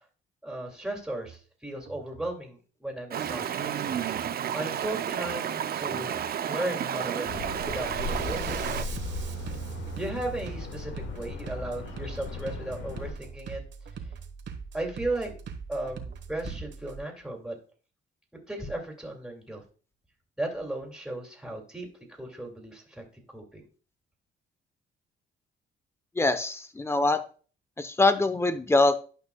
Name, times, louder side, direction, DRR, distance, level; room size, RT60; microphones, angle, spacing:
voice 1, 0.4-3.7 4.5-6.2 6.5-8.9 9.9-13.6 14.7-15.3 15.7-17.6 18.5-19.6 20.4-21.9 22.2-23.0 23.3-23.6, right 1 dB, 5° right, 1 dB, 2.3 m, -35 dB
Bass drum, 1.1-1.4 1.9-2.3 3.1-3.4 3.9-4.3 5.1-5.4 5.9-6.4 6.8-17.0, right 6 dB, 65° right, 1.2 m, -42 dB
Stream, 3.1-8.8, right 9 dB, 50° right, 0.6 m, -31 dB
sound 1, 7.3-13.1, left 4 dB, 75° left, 1.3 m, -37 dB
voice 2, 26.2-27.2 27.8-29.0, left 2 dB, 15° left, 11 dB, 0.8 m, -23 dB
11.5 x 5.4 x 2.3 m, 0.39 s
cardioid pair, 90°, 20 cm